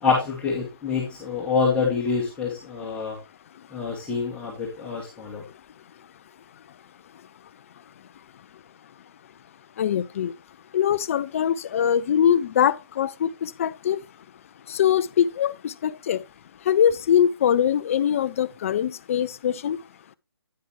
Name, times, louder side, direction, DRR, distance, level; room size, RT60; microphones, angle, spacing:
voice 1, 0.0-3.2 3.7-5.4, left 5 dB, 10° left, 1.9 m, -26 dB
voice 2, 9.8-10.3 10.7-14.0 14.7-16.2 16.7-19.8, left 9 dB, 35° left, 0.4 m, -22 dB
9.3 x 9.3 x 3.0 m
figure-of-eight pair, 150°, 13 cm